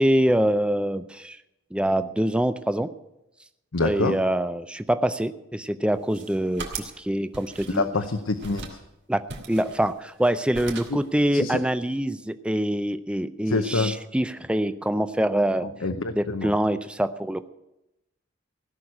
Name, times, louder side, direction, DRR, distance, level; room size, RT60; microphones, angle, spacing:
voice 1, 0.0-1.4 1.7-2.9 3.8-7.9 9.1-9.2 9.5-15.7 16.2-17.5, right 1 dB, 5° right, 11 dB, 0.5 m, -25 dB
voice 2, 3.7-4.2 7.7-8.8 11.3-11.6 13.5-13.9 15.8-16.5, left 3 dB, 75° left, 7 dB, 0.8 m, -26 dB
sound 1, 5.9-7.0 7.3-8.1 8.4-8.8 9.3-10.3 10.5-11.1, right 4 dB, 60° right, 2.6 m, -39 dB
16.5 x 6.4 x 9.7 m, 0.90 s
head